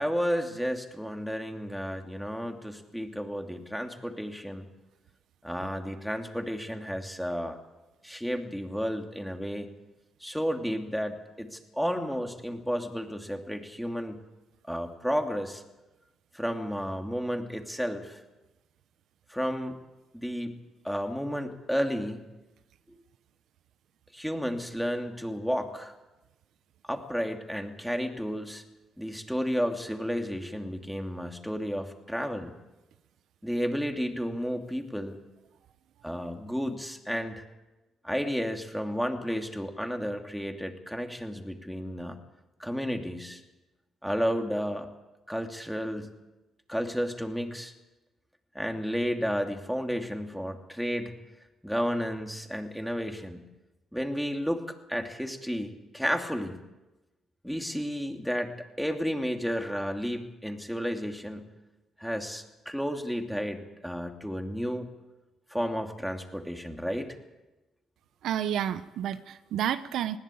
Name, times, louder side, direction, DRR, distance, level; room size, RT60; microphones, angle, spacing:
voice 1, 0.0-4.7 5.4-7.6 8.0-9.7 10.2-14.2 14.7-15.6 16.3-18.2 19.3-19.8 20.1-20.5 20.8-22.3 24.1-25.9 26.9-28.6 29.0-32.5 33.4-35.2 36.0-37.4 38.0-42.2 42.6-43.4 44.0-44.9 45.3-46.2 46.7-47.7 48.5-51.1 51.6-53.4 53.9-56.6 57.4-61.5 62.0-64.9 65.5-67.2, equal, ahead, 4 dB, 2.7 m, -32 dB
voice 2, 68.2-70.2, right 10 dB, 75° right, 12 dB, 0.9 m, -30 dB
20.5 x 17.0 x 8.7 m, 1.0 s
cardioid pair, 90°, 0 cm